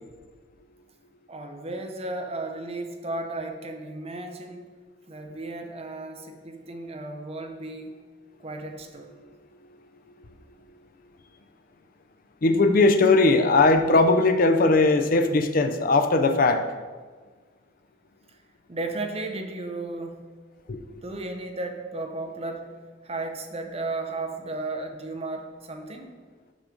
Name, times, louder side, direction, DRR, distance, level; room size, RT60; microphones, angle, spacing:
voice 1, 1.3-4.7 5.1-8.0 8.4-9.1 18.7-20.3 20.9-22.7 23.0-26.2, right 2 dB, 35° right, 5 dB, 0.7 m, -34 dB
voice 2, 12.4-16.6 20.7-20.8, left 3 dB, 50° left, 7 dB, 0.5 m, -19 dB
6.3 x 6.2 x 5.0 m, 1.5 s
head